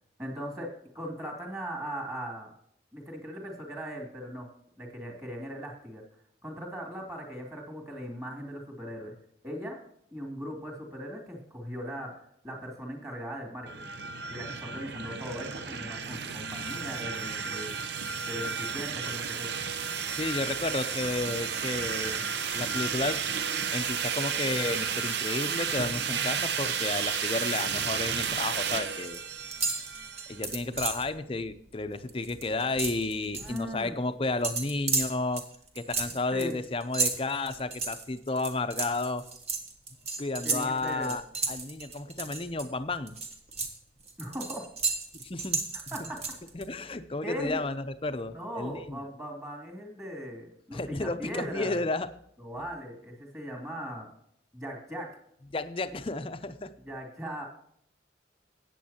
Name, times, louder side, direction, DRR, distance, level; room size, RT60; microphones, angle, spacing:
voice 1, 0.2-2.5 2.9-4.5 4.8-6.0 6.4-9.1 9.4-9.8 10.1-14.0 14.3-17.8 18.3-19.5 33.4-34.0 36.3-36.5 40.4-41.2 44.2-44.7 45.7-46.2 47.2-47.6 48.3-51.8 52.4-54.1 54.5-55.2 56.8-57.5, equal, 15° right, 1 dB, 2.8 m, -39 dB
sound 1, 13.7-30.4, right 6 dB, 65° right, 0.8 m, -32 dB
voice 2, 20.1-23.2 23.7-29.2 30.3-35.4 35.8-39.2 40.2-41.2 41.5-43.2 45.2-45.6 46.0-46.1 46.5-49.0 50.7-52.1 55.5-56.7, left 2 dB, 30° left, 11 dB, 0.6 m, -32 dB
sound 2, 27.9-28.5 28.7-29.2 29.5-31.1 31.5-31.7 32.0-33.6 34.4-42.7 43.1-46.7, right 4 dB, 35° right, 1.5 m, -33 dB
15.0 x 9.2 x 2.9 m, 0.69 s
head